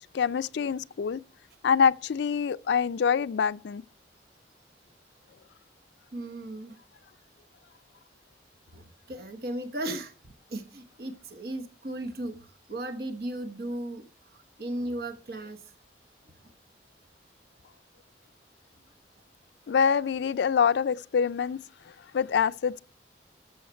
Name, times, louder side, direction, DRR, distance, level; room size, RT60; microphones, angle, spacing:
voice 1, 0.1-1.2 1.6-3.8 19.7-21.6 22.1-22.8, left 6 dB, 75° left, 0.4 m, -25 dB
voice 2, 6.1-6.8 8.7-10.1 10.5-14.0 14.3-15.6 16.4-16.5, right 1 dB, 60° right, 1.0 m, -36 dB
13.0 x 6.4 x 4.4 m
head